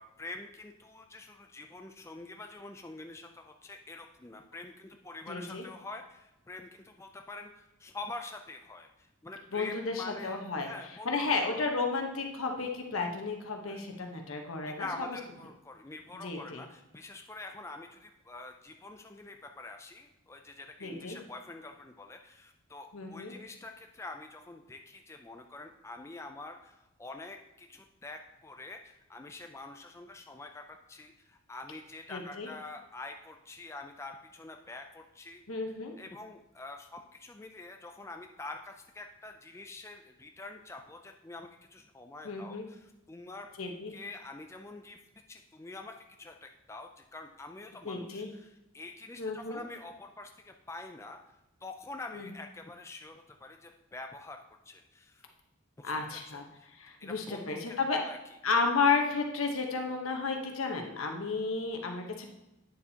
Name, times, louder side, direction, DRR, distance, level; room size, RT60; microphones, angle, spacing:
voice 1, 0.0-11.2 13.7-13.8 14.8-43.5 43.9-45.0 45.3-51.2 51.6-55.3 55.8-56.7 57.0-58.2, left 2 dB, 15° left, 4 dB, 0.3 m, -46 dB
voice 2, 5.3-5.6 9.5-10.7 11.0-14.9 16.2-16.6 20.8-21.2 22.9-23.4 32.1-32.5 35.5-35.9 42.2-42.7 43.6-43.9 47.8-48.3 49.2-49.6 52.1-52.2 55.8-56.4 56.7-58.0 58.4-62.3, left 4 dB, 80° left, 3 dB, 1.1 m, -32 dB
9.2 x 6.9 x 2.8 m, 0.94 s
head